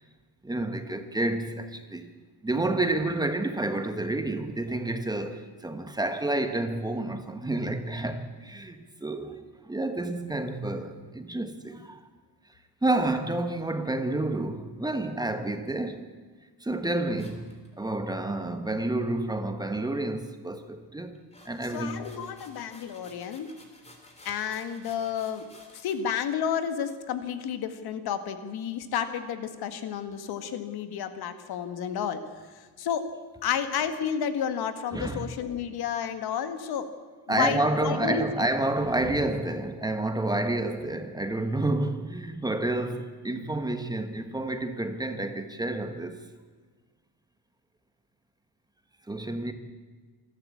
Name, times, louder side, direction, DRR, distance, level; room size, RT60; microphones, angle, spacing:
voice 1, 0.4-2.1 2.4-12.0 12.8-16.0 16.6-17.5 17.8-21.2 21.4-22.0 34.9-35.3 37.3-46.2 49.1-49.5, right 2 dB, 10° right, 1.3 m, -29 dB
sound 1, 17.2-18.2 21.1-26.0 26.2-26.3 26.9-27.0, left 1 dB, 15° left, 3.3 m, -53 dB
voice 2, 21.7-23.5 24.2-25.4 25.7-32.2 32.6-33.1 33.4-36.9 37.3-38.3, left 8 dB, 65° left, 1.8 m, -31 dB
26.5 x 12.0 x 8.5 m
cardioid pair, 140°, 40 cm